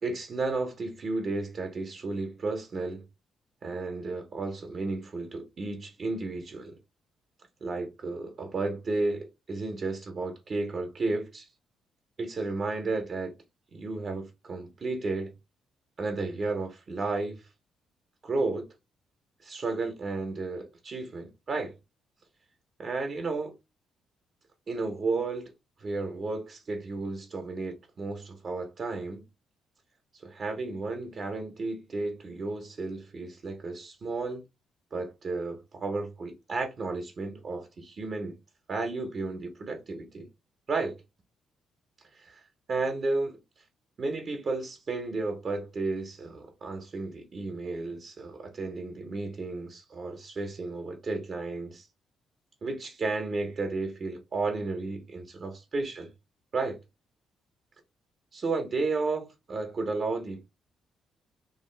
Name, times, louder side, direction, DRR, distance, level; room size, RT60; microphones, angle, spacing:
voice 1, 0.0-3.0 3.6-6.8 7.6-11.5 12.2-13.3 13.7-15.3 16.0-17.4 18.2-18.7 19.4-21.7 22.8-23.5 24.7-25.5 25.8-29.2 30.2-34.4 34.9-38.4 38.7-40.3 40.7-41.0 42.2-42.4 42.7-43.4 44.0-51.9 52.6-56.1 56.5-56.8 58.3-60.4, right 3 dB, 45° right, 0.6 m, -33 dB
2.5 x 2.3 x 3.2 m
cardioid pair, 90°, 0 cm